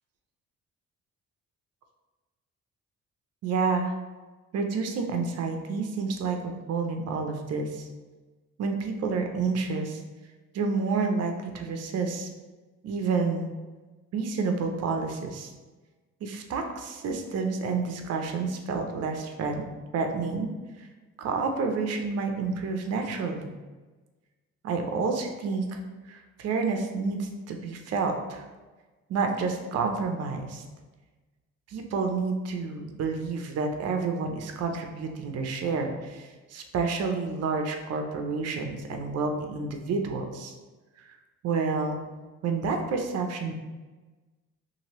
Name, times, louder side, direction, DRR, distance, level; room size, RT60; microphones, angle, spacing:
voice 1, 3.4-3.9 4.5-7.9 8.6-10.0 10.5-12.3 12.8-13.5 14.1-15.5 16.2-19.6 19.9-20.5 20.8-20.9 21.2-23.5 24.6-25.8 26.1-28.4 29.1-30.6 31.7-40.5 41.1-41.2 41.4-42.0 42.4-43.5, right 4 dB, 55° right, 4 dB, 0.5 m, -29 dB
2.9 x 2.5 x 2.9 m, 1.2 s
cardioid pair, 90°, 30 cm